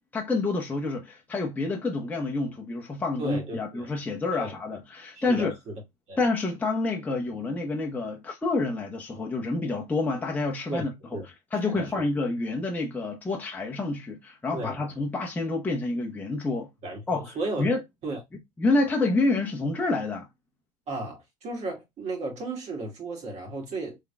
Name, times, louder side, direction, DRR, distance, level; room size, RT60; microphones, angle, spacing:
voice 1, 0.1-5.5 6.2-11.2 11.5-16.7 17.1-17.3 17.6-17.8 18.6-20.3, left 3 dB, 10° left, 0.9 m, -28 dB
voice 2, 3.2-3.9 4.3-4.5 5.1-5.7 6.1-6.2 10.7-10.8 11.1-11.3 11.7-12.1 14.5-14.8 16.8-17.7 18.0-18.2 20.9-24.0, right 2 dB, 35° right, 2.2 m, -34 dB
3.7 x 3.6 x 2.2 m
supercardioid pair, 120°, 19 cm